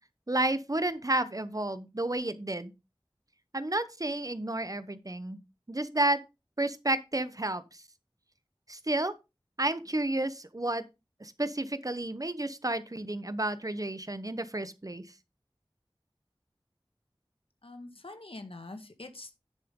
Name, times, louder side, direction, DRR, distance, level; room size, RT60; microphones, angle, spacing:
voice 1, 0.3-2.7 3.5-5.4 5.7-6.2 6.6-7.8 8.7-9.1 9.6-10.8 11.2-15.0, right 1 dB, 40° right, 0.9 m, -31 dB
voice 2, 17.6-19.3, left 2 dB, 85° left, 1.6 m, -44 dB
10.0 x 7.4 x 3.7 m
wide cardioid pair, 45°, 9 cm